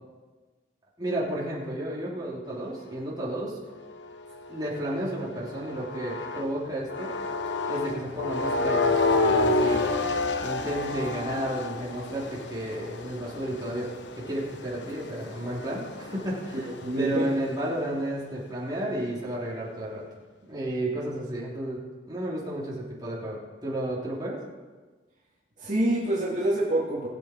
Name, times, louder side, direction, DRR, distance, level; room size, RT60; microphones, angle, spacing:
voice 1, 1.0-3.6 4.5-7.1 7.7-9.8 10.4-13.9 14.2-16.7 17.0-20.0 20.5-21.8 22.1-24.4, right 1 dB, 20° right, -5 dB, 3.2 m, -32 dB
sound 1, 3.6-6.5 6.9-17.3, left 3 dB, 80° left, 1.0 m, -30 dB
voice 2, 16.8-17.3 25.6-27.1, right 1 dB, 40° right, -6 dB, 2.4 m, -26 dB
21.5 x 7.8 x 4.5 m, 1.3 s
head